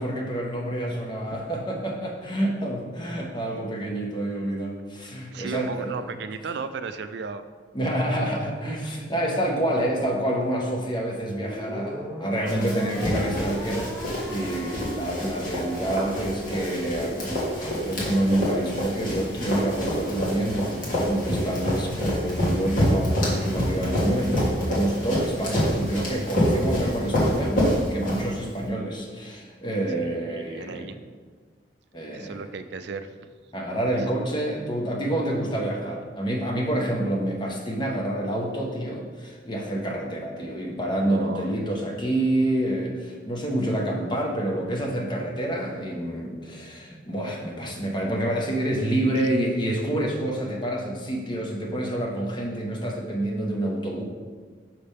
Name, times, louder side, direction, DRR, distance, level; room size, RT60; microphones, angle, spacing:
voice 1, 0.0-6.0 7.7-13.9 14.3-27.6 27.9-31.0 31.9-32.4 33.5-54.0, right 1 dB, 25° left, -1 dB, 0.9 m, -28 dB
voice 2, 5.3-7.4 30.0-31.0 32.1-33.1 41.1-41.5, right 5 dB, 65° right, 10 dB, 0.4 m, -35 dB
sound 1, 11.3-17.8, left 1 dB, 5° left, 0.5 m, -39 dB
Run, 12.5-28.6, equal, 50° left, 1.6 m, -27 dB
5.9 x 3.4 x 5.4 m, 1.5 s
head